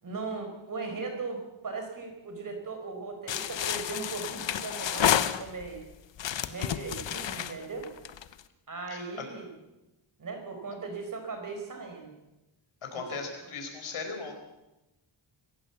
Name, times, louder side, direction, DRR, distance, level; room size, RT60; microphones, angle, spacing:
voice 1, 0.0-5.8 6.5-7.9 8.7-9.5 10.2-12.1 12.9-13.2, right 4 dB, 40° right, 4 dB, 4.9 m, -38 dB
sound 1, 3.3-5.8 6.2-8.4, left 10 dB, 60° left, 1.0 m, -30 dB
voice 2, 12.9-14.4, left 4 dB, 80° left, 4 dB, 5.1 m, -37 dB
25.0 x 15.5 x 7.2 m, 0.99 s
wide cardioid pair, 165°, 49 cm